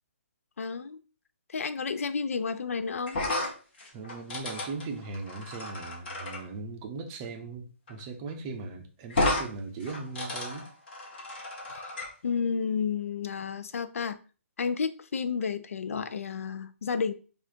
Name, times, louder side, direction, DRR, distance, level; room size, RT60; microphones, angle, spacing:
voice 1, 0.6-1.0 1.5-3.2 11.7-11.9 12.2-14.2 14.6-17.1, left 5 dB, 80° left, 0.5 m, -31 dB
sound 1, 3.1-6.4 7.9-8.0 8.3-8.4 9.1-9.5 9.8-12.1, left 2 dB, 45° left, 1.5 m, -32 dB
voice 2, 3.9-10.7, right 4 dB, 20° right, 0.6 m, -39 dB
4.7 x 2.5 x 4.4 m
hypercardioid pair, 170°, 8 cm